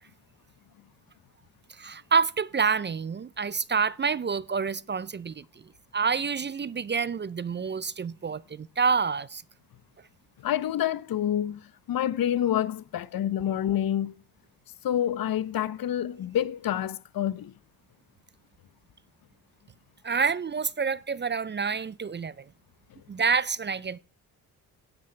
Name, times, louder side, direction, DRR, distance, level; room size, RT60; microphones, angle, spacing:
voice 1, 1.8-5.4 5.9-9.4 20.0-22.4 23.1-24.0, right 5 dB, 30° right, 0.5 m, -28 dB
voice 2, 10.4-11.6 11.9-14.1 14.8-17.5, left 11 dB, 60° left, 0.8 m, -27 dB
17.0 x 10.0 x 3.3 m
supercardioid pair, 65°, 39 cm